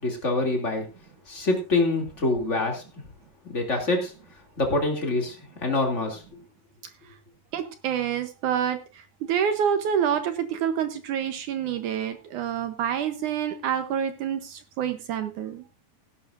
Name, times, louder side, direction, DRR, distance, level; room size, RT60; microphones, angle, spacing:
voice 1, 0.0-0.9 1.3-2.8 3.4-4.1 4.6-6.2, left 2 dB, 20° left, 2 dB, 2.5 m, -25 dB
voice 2, 7.5-15.6, right 8 dB, 70° right, 9 dB, 1.9 m, -27 dB
17.5 x 11.0 x 2.6 m, 0.31 s
omnidirectional pair, 4.6 m